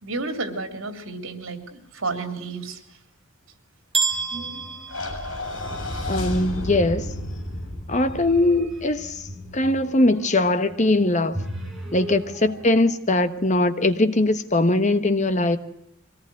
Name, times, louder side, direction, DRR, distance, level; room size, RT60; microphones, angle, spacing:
voice 1, 0.0-3.0 8.1-8.2 12.1-12.3, right 3 dB, 75° right, 3.6 m, -32 dB
sound 1, 3.9-5.9, right 4 dB, 25° right, 2.4 m, -28 dB
sound 2, 4.1-5.1 5.5-6.1 6.8-12.8, equal, ahead, 6.4 m, -39 dB
sound 3, 4.9-9.3, left 2 dB, 65° left, 7.1 m, -32 dB
voice 2, 6.1-7.0 7.9-9.2 9.5-11.4 11.9-15.6, left 2 dB, 35° left, 1.2 m, -21 dB
24.0 x 18.5 x 7.7 m
head